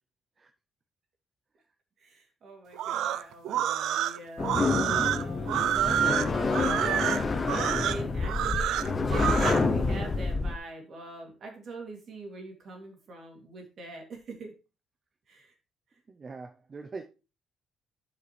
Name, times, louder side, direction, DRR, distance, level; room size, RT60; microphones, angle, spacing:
voice 1, 2.0-14.5 15.3-15.5, right 2 dB, 45° right, 2.7 m, -43 dB
sound 1, 2.7-9.6, right 11 dB, 75° right, 0.4 m, -28 dB
sound 2, 4.4-10.6, left 3 dB, 25° left, 0.7 m, -28 dB
voice 2, 16.1-17.1, right 4 dB, 25° right, 0.6 m, -42 dB
11.0 x 5.2 x 3.3 m
cardioid pair, 155°, 0 cm